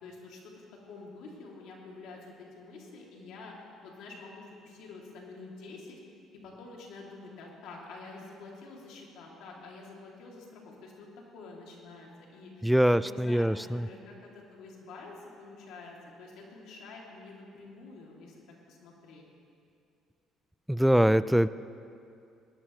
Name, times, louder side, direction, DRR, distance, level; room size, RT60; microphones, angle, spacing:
voice 1, 0.0-3.6 3.8-6.0 6.4-11.1 11.3-19.2, left 3 dB, 75° left, -2 dB, 2.7 m, -48 dB
voice 2, 12.6-13.9 20.7-21.5, equal, ahead, 15 dB, 0.4 m, -23 dB
19.0 x 12.5 x 3.2 m, 2.5 s
supercardioid pair, 85°, 0 cm